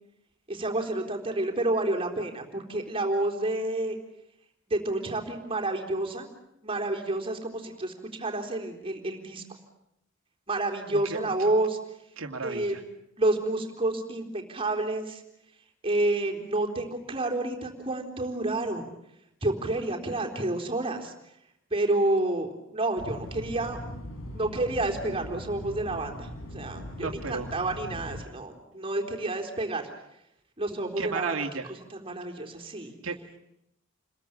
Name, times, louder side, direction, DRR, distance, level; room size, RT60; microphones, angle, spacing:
voice 1, 0.5-4.0 4.7-6.3 6.6-9.4 10.5-11.8 12.4-12.8 13.2-15.2 15.8-18.9 19.4-21.1 21.7-23.8 24.3-29.9 30.6-31.4 31.9-32.9, right 2 dB, 25° right, 3 dB, 3.9 m, -29 dB
voice 2, 12.2-12.8 27.0-27.5 31.0-31.7 33.0-33.4, right 4 dB, 90° right, 4 dB, 2.4 m, -34 dB
sound 1, 23.0-28.2, equal, 85° left, 4.4 m, -40 dB
29.5 x 22.0 x 8.7 m, 0.79 s
head